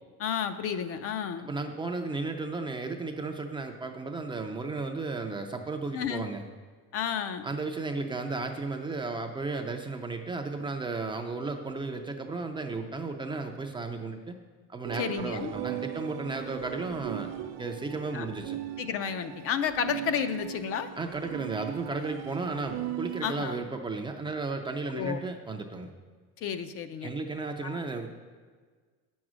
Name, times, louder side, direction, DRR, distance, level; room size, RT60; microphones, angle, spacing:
voice 1, 0.2-1.5 5.9-6.3 6.9-7.5 15.0-15.5 18.1-18.3 18.8-20.9 23.2-23.6 24.9-25.2 26.4-27.1 27.6-27.8, left 8 dB, 45° left, 10 dB, 0.5 m, -31 dB
voice 2, 1.5-6.4 7.4-14.4 14.7-17.3 17.6-18.6 21.0-25.9 27.0-28.1, right 3 dB, 15° right, 4 dB, 0.4 m, -34 dB
sound 1, 14.8-23.4, right 12 dB, 85° right, 0.6 m, -38 dB
8.6 x 6.3 x 6.1 m, 1.5 s
cardioid pair, 150°, 33 cm